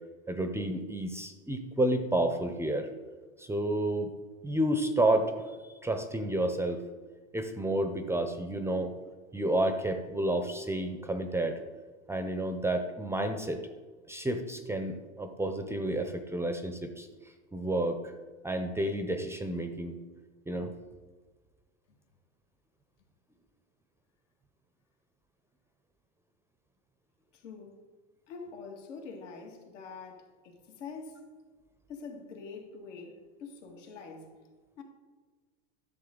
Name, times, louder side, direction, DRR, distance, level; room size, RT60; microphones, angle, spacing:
voice 1, 0.3-2.9 3.4-4.1 4.4-5.3 5.8-6.8 7.3-8.9 9.3-11.6 12.1-13.6 14.1-17.1 17.5-18.1 18.4-19.9 20.5-20.7, right 1 dB, 5° right, 7 dB, 0.6 m, -30 dB
voice 2, 27.3-27.8 28.3-31.2 31.9-34.3 34.8-34.9, left 4 dB, 80° left, 1 dB, 2.2 m, -45 dB
11.5 x 6.6 x 3.8 m, 1.4 s
hypercardioid pair, 115°, 36 cm